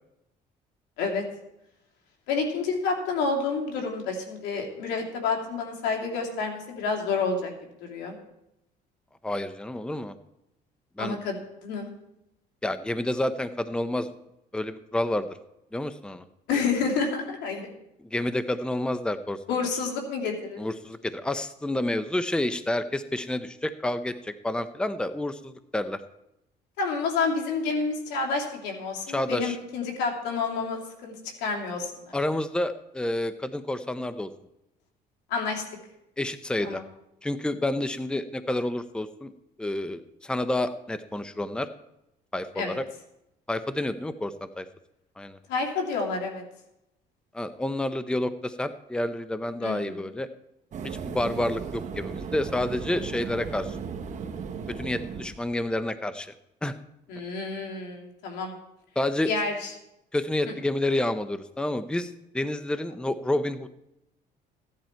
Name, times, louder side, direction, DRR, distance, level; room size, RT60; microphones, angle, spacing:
voice 1, 2.3-7.5 7.8-8.2 11.0-11.4 11.6-11.9 16.5-17.7 19.5-20.6 26.8-31.1 31.4-32.1 35.3-35.6 36.6-36.8 42.6-42.8 45.5-46.4 49.6-50.0 57.1-58.5 59.2-59.7, left 4 dB, 90° left, 1 dB, 3.0 m, -29 dB
voice 2, 9.2-10.1 11.0-11.2 12.6-14.1 14.5-15.3 15.7-16.2 18.0-19.4 20.6-26.0 29.1-29.6 32.1-34.3 36.2-36.8 37.2-39.3 39.6-41.7 42.3-42.8 43.5-44.7 45.2-45.4 47.3-50.3 50.8-53.8 54.8-56.3 56.6-56.7 59.0-59.3 60.1-63.8, left 1 dB, 5° left, 11 dB, 0.7 m, -29 dB
sound 1, 50.7-55.8, right 6 dB, 45° right, 1.3 m, -36 dB
15.5 x 10.5 x 4.5 m, 0.85 s
cardioid pair, 110°, 17 cm